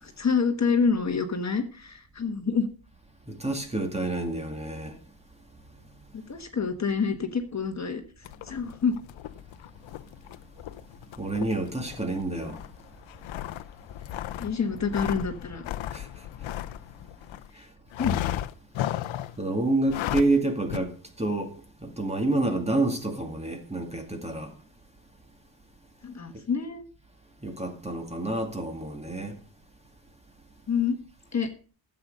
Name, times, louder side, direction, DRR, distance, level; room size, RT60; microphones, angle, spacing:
voice 1, 0.0-2.7 6.1-9.0 14.4-15.7 17.5-17.6 18.0-18.2 26.0-26.9 30.7-31.0 31.3-31.5, left 5 dB, 35° left, 1.3 m, -27 dB
voice 2, 3.3-5.0 11.2-12.6 15.9-16.2 17.6-17.7 19.4-21.5 21.8-24.5 27.4-29.4, right 2 dB, 15° right, 2.1 m, -28 dB
sound 1, 8.2-17.5 17.9-19.4 19.8-20.4 20.7-20.8, left 13 dB, 90° left, 0.7 m, -35 dB
12.0 x 8.0 x 5.3 m
cardioid pair, 105°, 46 cm